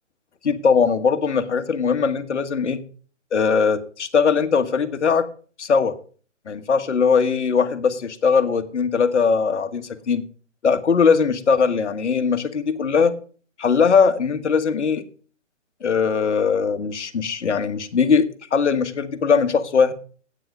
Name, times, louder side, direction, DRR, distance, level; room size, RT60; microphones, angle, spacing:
voice 1, 0.4-2.8 3.3-5.3 5.6-6.0 6.5-10.2 10.6-13.1 13.6-15.0 15.8-19.9, left 5 dB, 65° left, 10 dB, 1.4 m, -20 dB
8.9 x 7.9 x 6.5 m, 0.41 s
figure-of-eight pair, 140°, 37 cm